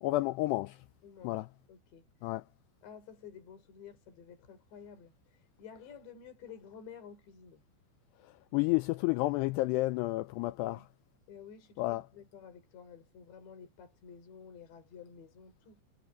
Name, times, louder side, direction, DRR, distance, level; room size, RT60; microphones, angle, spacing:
voice 1, 0.0-0.8 1.2-1.5 2.2-2.4 8.5-10.8 11.8-12.0, left 20 dB, 90° left, 2.4 m, -30 dB
voice 2, 1.0-2.1 2.8-7.6 10.4-10.9 11.3-15.8, left 7 dB, 70° left, 6.8 m, -52 dB
omnidirectional pair, 5.3 m